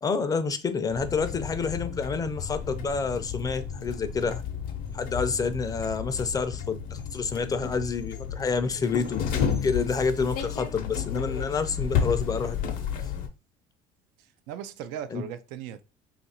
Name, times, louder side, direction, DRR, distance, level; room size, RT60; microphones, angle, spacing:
voice 1, 0.0-4.4 4.9-9.2 9.6-12.7 15.1-15.2, left 5 dB, 25° left, 0.4 m, -28 dB
sound 1, 0.9-13.3, left 7 dB, 70° left, 0.6 m, -32 dB
voice 2, 14.2-15.8, right 9 dB, 85° right, 0.4 m, -38 dB
2.8 x 2.5 x 4.1 m
cardioid pair, 105°, 15 cm